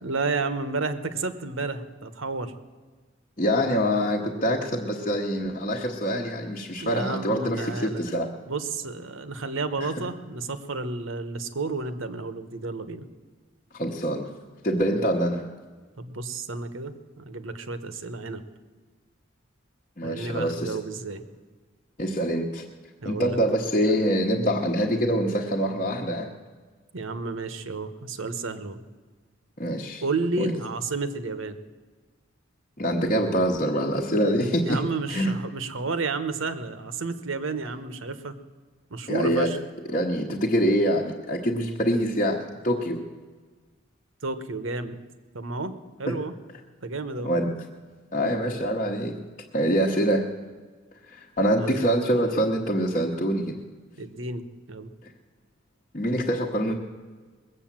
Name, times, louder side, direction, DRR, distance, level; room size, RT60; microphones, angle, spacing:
voice 1, 0.0-2.5 6.8-8.1 8.5-13.1 16.0-18.4 20.0-21.2 23.0-23.4 26.9-28.8 30.0-31.6 34.6-38.3 38.9-39.6 44.2-45.0 45.3-46.3 46.8-47.3 51.6-51.9 54.0-54.9, right 3 dB, 75° right, 11 dB, 1.0 m, -31 dB
voice 2, 3.4-8.3 9.8-9.9 13.7-14.3 14.6-15.4 20.0-20.8 22.0-22.6 23.0-26.3 29.6-30.0 30.4-30.5 32.8-34.8 35.1-35.3 39.1-39.5 39.9-43.0 46.1-46.2 47.2-47.5 48.1-49.2 49.5-50.3 51.1-53.6 55.9-56.7, equal, 35° left, -3 dB, 1.0 m, -25 dB
20.5 x 8.2 x 7.4 m, 1.4 s
head